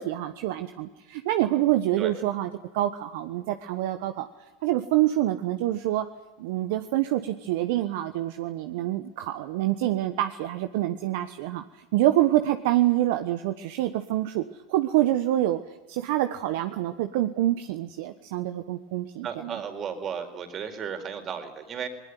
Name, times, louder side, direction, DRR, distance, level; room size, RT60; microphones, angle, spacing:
voice 1, 0.0-4.3 4.6-6.0 6.4-11.6 11.9-14.4 14.7-15.6 15.9-19.6, right 14 dB, 65° right, 9 dB, 1.2 m, -26 dB
voice 2, 19.2-21.9, right 7 dB, 35° right, 6 dB, 4.6 m, -34 dB
20.5 x 20.0 x 9.5 m, 1.1 s
hypercardioid pair, 95°, 0 cm